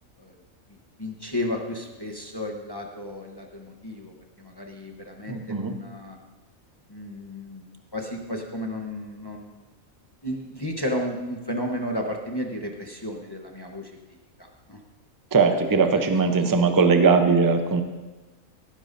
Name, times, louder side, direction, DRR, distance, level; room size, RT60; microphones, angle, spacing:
voice 1, 1.0-6.2 6.9-7.7 7.9-9.6 10.2-13.9 14.4-14.8 15.7-16.4, left 1 dB, 20° left, 1 dB, 0.8 m, -33 dB
voice 2, 5.3-5.7 15.3-17.8, right 4 dB, 20° right, 6 dB, 0.6 m, -20 dB
17.5 x 10.5 x 2.6 m, 1.2 s
omnidirectional pair, 1.4 m